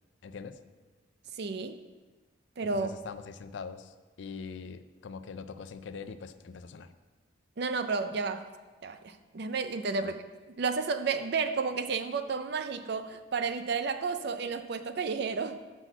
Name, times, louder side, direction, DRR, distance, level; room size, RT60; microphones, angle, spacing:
voice 1, 0.2-0.6 2.7-6.9 10.0-10.2, left 5 dB, 65° left, 11 dB, 0.4 m, -43 dB
voice 2, 1.4-1.8 2.6-2.9 7.6-8.4 8.8-10.2 10.6-15.6, right 4 dB, 55° right, 10 dB, 0.5 m, -31 dB
6.0 x 5.8 x 5.8 m, 1.3 s
head